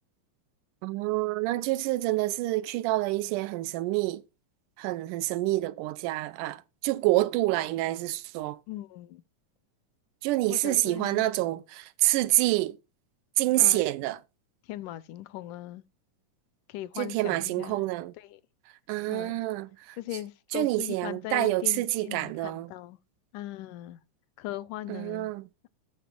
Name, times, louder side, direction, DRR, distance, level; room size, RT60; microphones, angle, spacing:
voice 1, 0.8-4.2 4.8-8.6 10.2-12.8 13.4-14.2 17.0-18.1 18.9-20.0 20.5-22.7 24.9-25.5, right 17 dB, 90° right, 2.2 m, -27 dB
voice 2, 8.7-9.2 10.5-11.2 13.6-13.8 14.7-15.8 16.7-17.8 18.2-18.4 19.1-19.4 20.0-23.0 23.3-24.0 24.4-25.3, left 15 dB, 80° left, 2.1 m, -39 dB
17.0 x 6.7 x 2.2 m
omnidirectional pair, 3.6 m